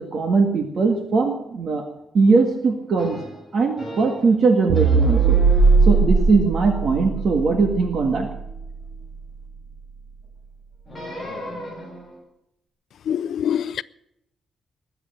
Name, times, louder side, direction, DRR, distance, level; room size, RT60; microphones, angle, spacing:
voice 1, 0.0-1.8 2.1-3.2 3.5-5.4 5.8-8.3, right 4 dB, 45° right, 1.8 m, -20 dB
sound 1, 3.0-4.3 4.7-9.1 10.9-12.2, equal, 5° left, 7.6 m, -35 dB
sound 2, 4.7-9.2, right 4 dB, 70° right, 1.6 m, -19 dB
voice 2, 13.1-13.8, left 9 dB, 60° left, 0.5 m, -24 dB
21.0 x 8.1 x 7.7 m
cardioid pair, 155°, 0 cm